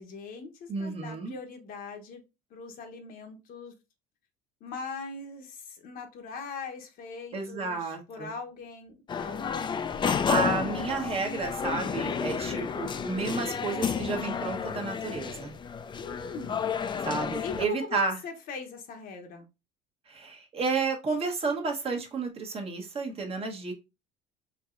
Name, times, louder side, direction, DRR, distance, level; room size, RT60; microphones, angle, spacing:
voice 1, 0.0-2.2 2.5-3.7 4.6-9.5 12.4-12.7 16.0-16.7 17.4-19.5, left 4 dB, 60° left, 5 dB, 0.9 m, -41 dB
voice 2, 0.7-1.3 7.3-8.3 10.0-15.5 17.0-18.2 20.1-23.8, right 4 dB, 35° right, 3 dB, 1.1 m, -31 dB
sound 1, 9.1-17.7, left 6 dB, 25° left, 0.4 m, -31 dB
4.5 x 2.8 x 2.5 m, 0.26 s
supercardioid pair, 90°, 17 cm